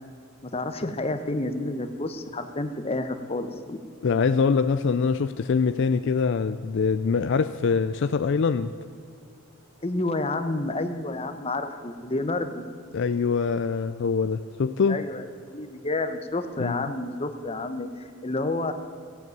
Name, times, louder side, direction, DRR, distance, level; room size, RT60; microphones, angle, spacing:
voice 1, 0.5-3.8 9.8-12.7 14.9-18.7, left 2 dB, 30° left, 8 dB, 0.9 m, -30 dB
voice 2, 4.0-8.7 12.9-15.0 16.6-16.8, left 5 dB, 60° left, 11 dB, 0.4 m, -24 dB
15.0 x 8.3 x 9.2 m, 2.4 s
head